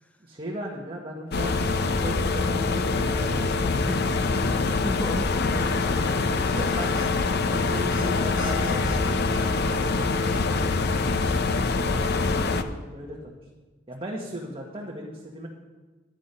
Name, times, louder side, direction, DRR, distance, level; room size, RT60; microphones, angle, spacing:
voice 1, 0.2-3.2 5.4-5.5 6.5-10.8 12.3-13.3 13.9-15.5, right 1 dB, 30° right, -2 dB, 1.4 m, -37 dB
sound 1, 1.3-12.6, left 3 dB, 55° left, 0.6 m, -24 dB
voice 2, 3.0-7.0 11.7-12.2, left 1 dB, 10° left, 6 dB, 0.6 m, -36 dB
sound 2, 6.6-12.3, left 4 dB, 75° left, 2.5 m, -39 dB
10.5 x 9.1 x 5.5 m, 1.3 s
head